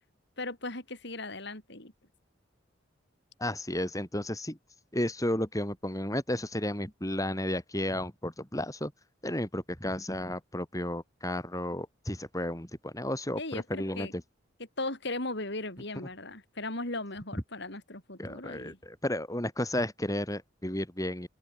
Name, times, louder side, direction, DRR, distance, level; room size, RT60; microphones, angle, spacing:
voice 1, 0.4-1.9 13.4-14.1 14.8-18.8, left 2 dB, 60° left, 6.5 m, -37 dB
voice 2, 3.4-4.6 4.9-8.9 9.2-14.1 18.2-21.3, left 1 dB, 15° left, 5.5 m, -33 dB
open air
head